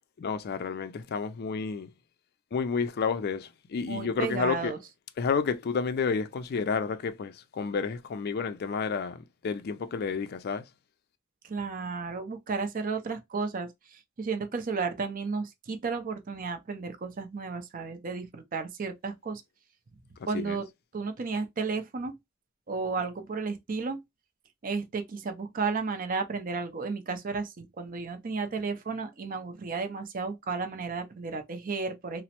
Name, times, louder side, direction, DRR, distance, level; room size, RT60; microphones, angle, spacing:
voice 1, 0.2-1.9 2.5-4.7 5.2-10.6 20.3-20.6, left 5 dB, 50° left, 0.4 m, -30 dB
voice 2, 3.8-4.8 11.4-19.4 20.3-20.7 20.9-22.1 22.7-24.0 24.6-32.2, right 4 dB, 45° right, 0.5 m, -33 dB
3.0 x 2.0 x 2.8 m
head